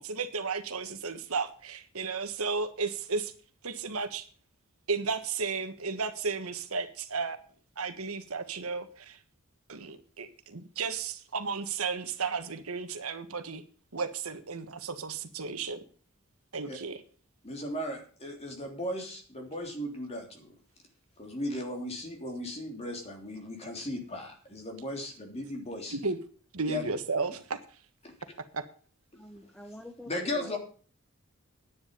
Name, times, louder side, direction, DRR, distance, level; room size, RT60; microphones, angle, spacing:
voice 1, 0.0-3.3 3.6-4.2 4.9-7.4 7.8-9.2 9.7-13.6 13.9-15.8 16.5-17.0 25.9-26.2 26.5-27.6 28.5-28.6, right 4 dB, 75° right, 9 dB, 1.4 m, -33 dB
voice 2, 17.4-20.5 21.2-26.0 26.7-26.8 28.0-28.1 29.4-29.5 30.1-30.6, left 1 dB, 30° left, 2 dB, 3.3 m, -36 dB
voice 3, 29.1-30.6, equal, 5° left, 5 dB, 1.2 m, -46 dB
10.5 x 9.6 x 5.4 m, 0.42 s
head